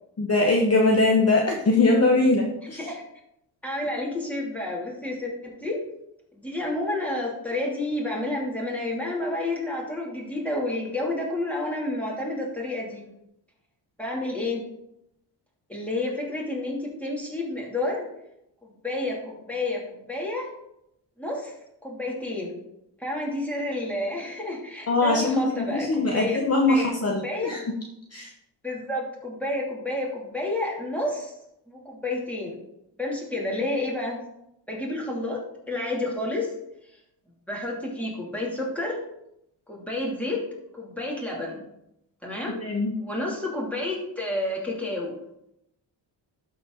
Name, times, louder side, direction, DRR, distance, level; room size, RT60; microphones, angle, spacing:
voice 1, 0.2-2.8 24.9-27.6 28.1-28.3 42.6-42.9, left 2 dB, 35° left, 0 dB, 1.1 m, -22 dB
voice 2, 3.6-5.8 6.4-13.0 14.0-14.6 15.7-18.1 18.6-20.5 21.2-21.5 21.8-22.6 23.0-26.4 26.7-26.9 27.2-27.5 28.6-31.3 31.7-32.6 33.0-34.2 34.7-35.4 35.7-36.5 37.5-39.0 39.7-40.4 40.7-41.6 42.2-42.6 43.0-45.1, left 1 dB, 5° left, -3 dB, 2.8 m, -30 dB
12.5 x 4.3 x 3.9 m, 0.80 s
cardioid pair, 95°, 45 cm